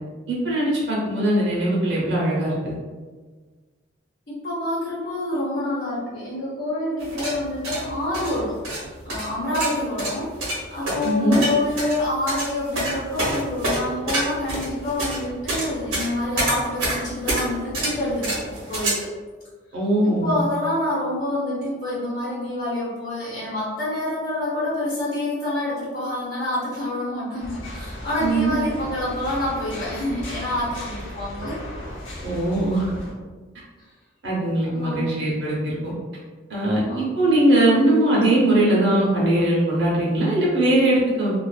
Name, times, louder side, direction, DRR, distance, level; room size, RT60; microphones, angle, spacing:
voice 1, 0.3-2.7 11.0-11.4 19.7-20.4 28.2-28.5 32.2-32.8 34.2-35.9 36.5-41.4, right 1 dB, 60° right, -5 dB, 0.8 m, -20 dB
voice 2, 4.3-10.3 10.7-19.1 20.2-31.6 34.6-35.1 36.7-37.0, left 1 dB, 45° left, -13 dB, 0.8 m, -27 dB
sound 1, 7.0-18.9, right 1 dB, 85° right, 0.9 m, -27 dB
sound 2, 27.4-33.1, left 1 dB, 75° left, 0.7 m, -36 dB
2.5 x 2.4 x 2.3 m, 1.4 s
head